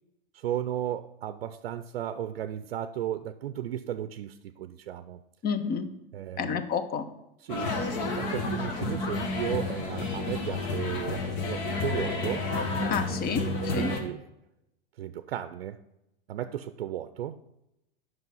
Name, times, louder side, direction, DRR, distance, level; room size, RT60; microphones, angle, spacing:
voice 1, 0.3-5.2 6.1-6.6 7.4-7.8 8.0-12.4 13.7-14.2 15.0-15.8 16.3-17.4, right 11 dB, 90° right, 11 dB, 0.5 m, -34 dB
voice 2, 5.4-5.9 6.4-7.1 12.9-13.5 13.7-13.9, left 6 dB, 30° left, 11 dB, 0.9 m, -29 dB
sound 1, 7.5-14.0, left 3 dB, 55° left, 1.7 m, -30 dB
8.1 x 5.6 x 5.5 m, 0.88 s
hypercardioid pair, 105°, 29 cm